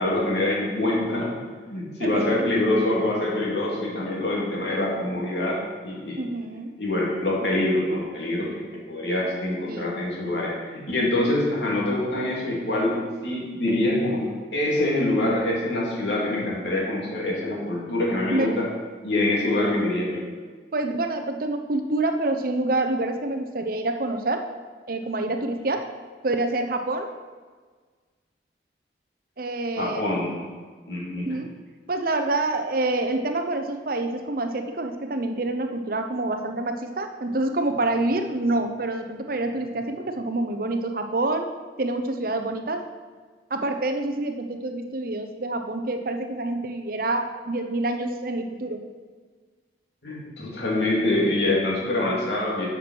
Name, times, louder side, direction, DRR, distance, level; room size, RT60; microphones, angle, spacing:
voice 1, 0.0-6.2 6.8-12.9 13.2-18.7 19.0-20.2 29.8-30.4 30.9-31.3 50.0-52.7, left 1 dB, 70° left, -4 dB, 2.8 m, -25 dB
voice 2, 2.0-2.5 6.2-6.7 9.7-9.9 18.3-18.6 20.7-24.5 24.9-25.9 26.2-27.1 29.4-30.3 31.3-31.6 31.9-41.5 41.8-42.9 43.5-48.8, right 2 dB, 50° right, 6 dB, 0.8 m, -27 dB
8.9 x 6.1 x 6.3 m, 1.5 s
head